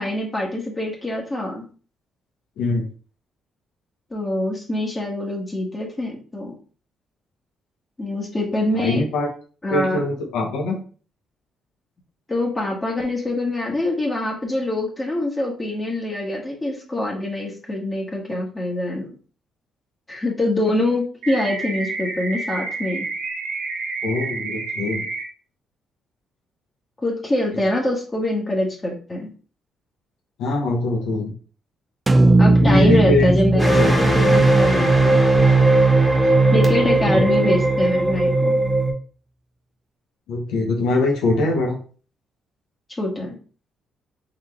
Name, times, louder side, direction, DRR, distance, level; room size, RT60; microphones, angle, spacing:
voice 1, 0.0-1.6 4.1-6.5 8.0-9.0 9.6-10.0 12.3-19.1 20.1-23.1 27.0-29.3 32.4-35.2 36.5-38.6 43.0-43.3, left 1 dB, 20° left, -1 dB, 1.4 m, -24 dB
voice 2, 8.8-9.3 9.7-10.8 24.0-25.0 30.4-31.3 32.6-34.0 36.2-36.3 37.1-37.2 40.3-41.8, left 2 dB, 90° left, 0 dB, 0.9 m, -23 dB
sound 1, 21.2-25.2, right 3 dB, 80° right, 1.2 m, -29 dB
sound 2, 32.1-36.3, right 2 dB, 25° right, 0.4 m, -19 dB
sound 3, 33.6-38.9, right 2 dB, ahead, 1.4 m, -17 dB
4.0 x 3.1 x 3.4 m, 0.40 s
cardioid pair, 90°, 0 cm